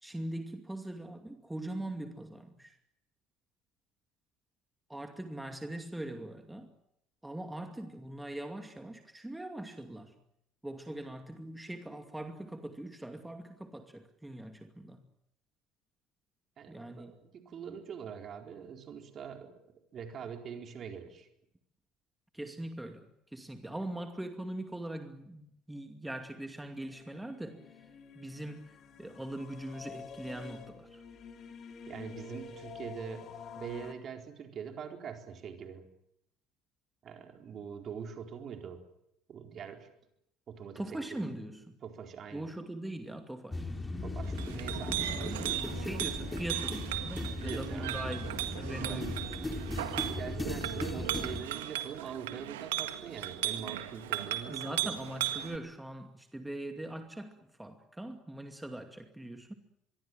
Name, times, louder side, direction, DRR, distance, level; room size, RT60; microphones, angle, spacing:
voice 1, 0.0-2.8 4.9-6.7 7.2-10.1 10.6-15.0 16.7-17.2 22.3-27.6 28.1-31.0 40.7-41.8 42.3-43.7 45.1-49.6 54.5-59.5, right 1 dB, 10° right, 2.5 m, -41 dB
voice 2, 16.6-19.5 19.9-21.3 23.6-23.8 31.9-35.9 37.0-38.8 39.3-39.9 40.5-41.3 41.8-42.5 44.0-45.6 47.4-48.0 48.6-49.1 50.2-54.7, right 7 dB, 45° right, 4.3 m, -44 dB
sound 1, 26.7-33.9, left 5 dB, 45° left, 3.0 m, -48 dB
sound 2, 43.5-51.4, left 2 dB, 15° left, 3.6 m, -37 dB
Chink clink, 44.2-55.6, right 13 dB, 75° right, 1.8 m, -37 dB
25.0 x 23.0 x 7.7 m
figure-of-eight pair, 60°, 0 cm